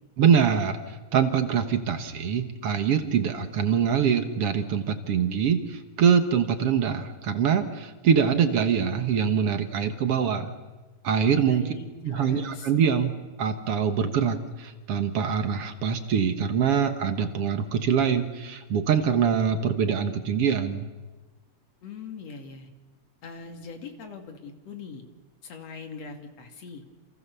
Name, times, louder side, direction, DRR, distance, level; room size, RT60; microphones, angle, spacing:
voice 1, 0.2-0.8 1.1-10.5 11.0-11.7 12.0-13.1 13.4-20.9, right 7 dB, 55° right, 8 dB, 2.2 m, -24 dB
voice 2, 11.4-12.7 21.8-22.7 23.2-25.0 25.4-26.8, left 4 dB, 60° left, 5 dB, 3.4 m, -41 dB
29.5 x 28.0 x 7.0 m, 1.3 s
omnidirectional pair, 3.3 m